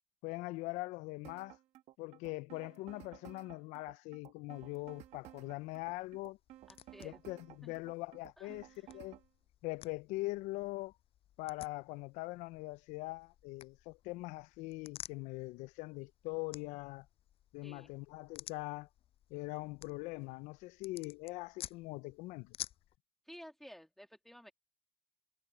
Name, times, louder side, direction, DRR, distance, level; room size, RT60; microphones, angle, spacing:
voice 1, 0.2-1.6 2.0-6.4 7.0-8.7 8.9-9.2 9.6-10.9 11.4-17.1 17.5-18.9 19.3-22.5, left 22 dB, 70° left, 0.6 m, -42 dB
sound 1, 1.2-9.3, right 14 dB, 60° right, 1.5 m, -55 dB
sound 2, 4.8-23.0, left 12 dB, 50° left, 6.0 m, -54 dB
voice 2, 6.7-7.2 7.6-7.8 8.4-9.0 17.6-17.9 23.3-24.5, equal, ahead, 2.1 m, -54 dB
cardioid pair, 125°, 12 cm